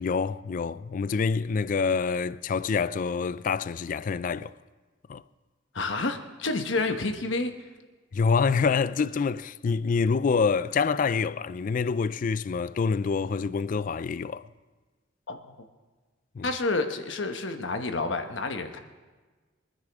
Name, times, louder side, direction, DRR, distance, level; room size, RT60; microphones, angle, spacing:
voice 1, 0.0-4.5 5.1-5.2 8.1-14.4 16.4-16.5, left 5 dB, 40° left, 0.3 m, -26 dB
voice 2, 5.7-7.5 15.3-15.5 16.4-18.8, left 3 dB, 65° left, 1.1 m, -29 dB
23.5 x 10.0 x 3.5 m
head